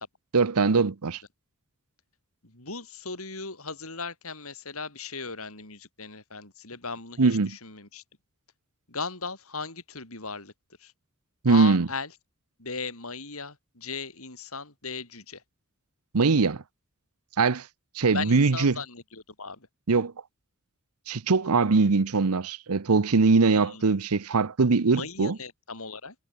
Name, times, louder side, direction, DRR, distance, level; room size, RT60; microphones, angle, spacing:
voice 1, 0.3-1.2 7.2-7.6 11.4-11.9 16.1-16.6 17.4-17.6 18.0-18.8 19.9-20.1 21.1-25.4, right 4 dB, 85° right, 0.8 m, -22 dB
voice 2, 2.4-8.0 8.9-10.5 10.8-10.9 11.5-12.1 12.6-15.4 18.1-19.7 23.5-23.8 24.9-26.2, left 4 dB, 70° left, 7.6 m, -37 dB
head